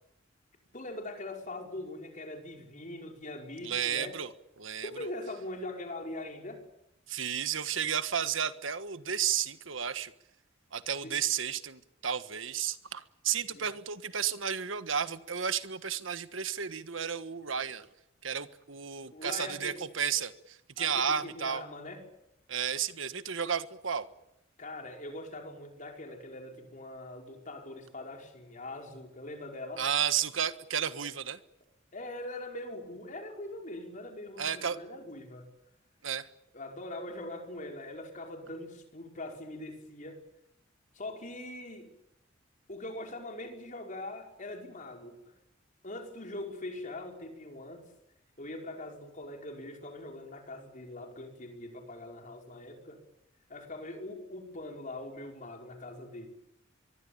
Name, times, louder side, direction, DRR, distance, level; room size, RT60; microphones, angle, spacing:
voice 1, 0.7-4.2 4.8-6.6 11.0-11.1 13.5-13.7 19.1-19.8 20.8-22.0 24.6-29.8 31.9-35.5 36.5-40.2 40.9-42.0 42.7-45.2 45.8-47.8 48.4-53.0 53.5-56.3, left 1 dB, 40° left, 3 dB, 5.2 m, -42 dB
voice 2, 3.6-4.3 4.6-4.9 7.1-10.1 10.7-17.9 18.2-21.6 22.5-24.1 29.8-31.4 34.4-34.8 36.0-36.3, right 8 dB, 85° right, 12 dB, 1.5 m, -32 dB
23.5 x 23.5 x 8.8 m, 0.86 s
head